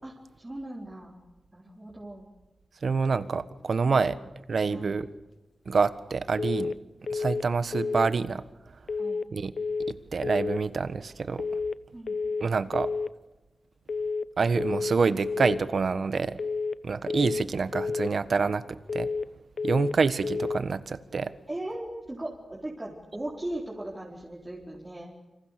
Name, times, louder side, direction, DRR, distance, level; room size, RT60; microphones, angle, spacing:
voice 1, 0.0-1.2 1.5-2.3 4.7-5.0 9.0-9.2 11.9-12.2 21.5-25.1, right 1 dB, 20° right, -3 dB, 4.3 m, -38 dB
voice 2, 2.8-4.2 4.5-5.1 5.6-6.7 7.1-8.4 9.3-9.5 9.9-11.4 12.4-12.9 14.4-16.4 16.8-19.1 19.6-21.3, right 4 dB, 60° right, 13 dB, 1.4 m, -27 dB
sound 1, 6.4-6.8 7.1-7.5 7.7-8.1 8.9-9.3 9.6-10.0 10.2-10.6 11.4-11.8 12.1-12.5 12.7-13.1 13.9-14.3 14.6-15.0 15.2-15.6 16.4-16.8 17.1-17.5 17.7-18.1 18.9-19.3 19.6-20.0 20.2-20.6, left 4 dB, 60° left, 0.8 m, -30 dB
28.5 x 26.0 x 6.7 m, 1.0 s
wide cardioid pair, 120°, 0 cm